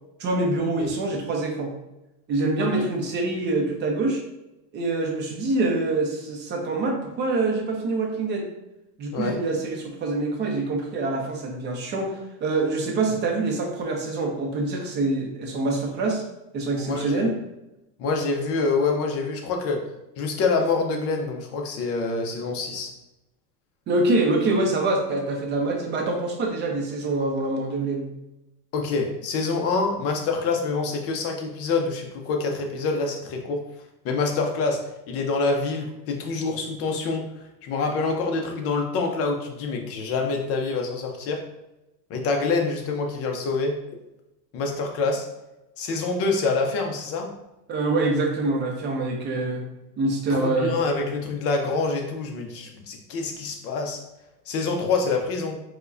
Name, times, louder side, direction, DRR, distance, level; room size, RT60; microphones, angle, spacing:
voice 1, 0.2-1.7 2.3-4.2 4.7-8.5 9.0-16.2 16.5-17.3 23.9-28.1 47.7-49.6 50.0-50.7, right 2 dB, 25° right, 2 dB, 0.5 m, -25 dB
voice 2, 9.1-9.4 16.7-17.3 18.0-19.8 20.2-22.9 28.7-33.6 34.0-41.4 42.1-43.8 44.5-45.3 45.8-47.3 50.3-54.0 54.5-55.6, left 4 dB, 30° left, 3 dB, 0.5 m, -26 dB
4.4 x 2.2 x 2.5 m, 0.95 s
supercardioid pair, 125°, 48 cm